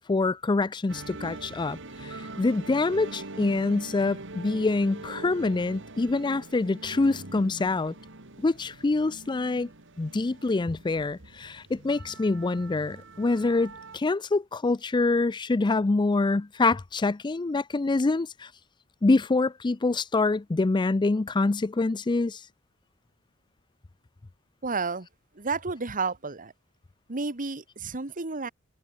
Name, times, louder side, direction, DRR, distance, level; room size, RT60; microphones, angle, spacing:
voice 1, 0.1-7.9 8.4-9.7 10.0-18.5 19.0-22.5, left 3 dB, 20° left, 0.4 m, -25 dB
sound 1, 0.9-14.0, right 2 dB, 65° right, 3.3 m, -43 dB
voice 2, 24.6-25.1 25.3-26.5 27.1-28.5, right 4 dB, 40° right, 1.5 m, -31 dB
head